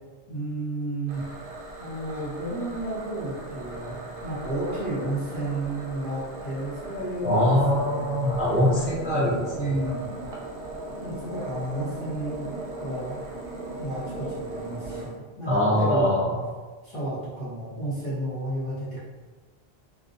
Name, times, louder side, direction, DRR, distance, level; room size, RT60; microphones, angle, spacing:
voice 1, 0.3-1.2 1.8-8.2 9.5-10.1 11.0-13.2 13.7-16.3 16.8-19.1, right 1 dB, 50° left, -10 dB, 0.9 m, -32 dB
sound 1, 1.1-15.1, right 2 dB, 80° right, 0.9 m, -38 dB
voice 2, 7.2-9.7 15.5-16.4, left 1 dB, 10° right, -9 dB, 0.4 m, -23 dB
2.4 x 2.1 x 2.5 m, 1.3 s
omnidirectional pair, 1.0 m